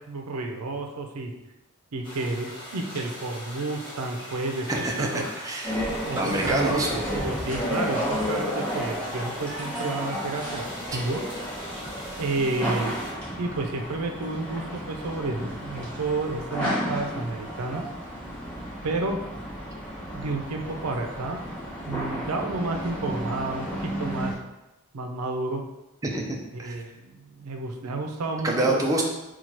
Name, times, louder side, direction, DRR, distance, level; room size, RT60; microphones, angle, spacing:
voice 1, 0.1-1.3 1.9-4.7 5.0-5.3 5.9-11.2 12.2-13.1 13.4-17.8 18.8-19.5 20.1-21.4 21.9-24.3 24.9-25.6 26.5-28.8, right 2 dB, 85° right, 3 dB, 0.5 m, -31 dB
sound 1, 2.0-13.1, left 1 dB, 20° left, 1.4 m, -41 dB
voice 2, 4.7-6.9 26.0-26.7 28.4-29.1, right 1 dB, 15° right, -1 dB, 0.5 m, -27 dB
sound 2, 5.6-24.3, equal, 5° left, 1.2 m, -32 dB
4.3 x 2.3 x 4.4 m, 0.98 s
head